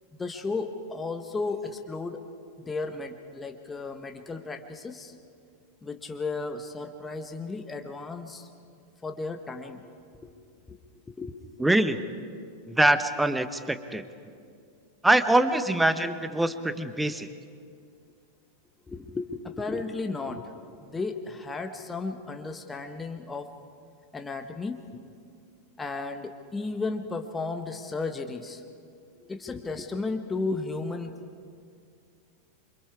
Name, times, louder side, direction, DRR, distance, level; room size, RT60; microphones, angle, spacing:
voice 1, 0.1-2.2 2.6-5.1 5.8-8.5 9.0-9.8 10.2-10.3 10.7-10.8 11.1-11.4 18.9-20.5 20.8-23.5 24.1-24.8 25.8-28.6 29.3-31.1, left 3 dB, 15° left, 5 dB, 1.3 m, -34 dB
voice 2, 11.6-12.0 12.7-14.0 15.0-17.3, right 1 dB, 5° right, 11 dB, 1.1 m, -23 dB
27.5 x 25.5 x 4.8 m, 2.3 s
figure-of-eight pair, 90°, 0 cm